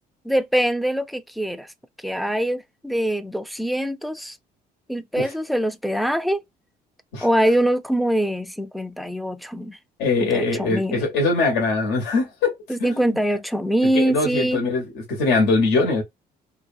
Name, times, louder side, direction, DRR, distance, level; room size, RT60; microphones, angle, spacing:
voice 1, 0.2-1.7 2.0-4.4 4.9-6.4 7.2-9.8 10.2-11.0 12.7-14.6, right 1 dB, ahead, 0.3 m, -23 dB
voice 2, 10.0-12.5 12.8-13.2 13.9-16.0, left 3 dB, 90° left, 1.0 m, -22 dB
2.7 x 2.2 x 2.5 m
cardioid pair, 110°, 17 cm